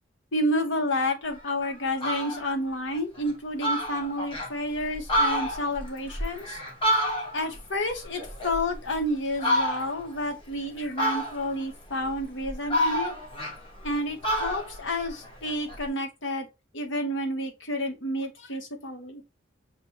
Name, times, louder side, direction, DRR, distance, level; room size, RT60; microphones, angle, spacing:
voice 1, 0.3-6.6 7.3-13.1 13.8-16.5 16.7-19.2, left 1 dB, 70° left, 1.0 m, -30 dB
Fowl, 1.4-1.5 1.9-2.5 2.9-3.0 3.3-3.4 3.6-4.5 4.9-7.6 7.9-9.0 9.4-10.1 11.0-11.6 12.2-13.9 14.2-15.8, equal, 30° left, 1.2 m, -28 dB
6.6 x 2.2 x 2.8 m
head